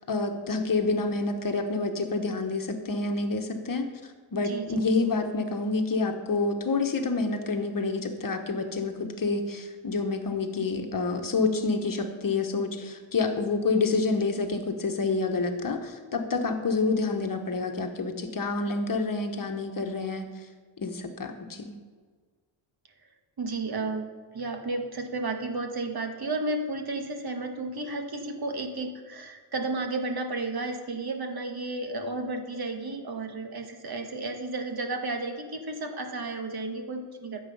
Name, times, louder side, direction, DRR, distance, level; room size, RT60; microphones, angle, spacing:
voice 1, 0.1-3.9 4.3-20.3 20.8-21.7, left 3 dB, 40° left, 5 dB, 1.3 m, -28 dB
voice 2, 4.4-4.9 23.4-37.4, right 2 dB, 50° right, 5 dB, 1.5 m, -33 dB
14.0 x 7.6 x 5.5 m, 1.5 s
cardioid pair, 95°, 49 cm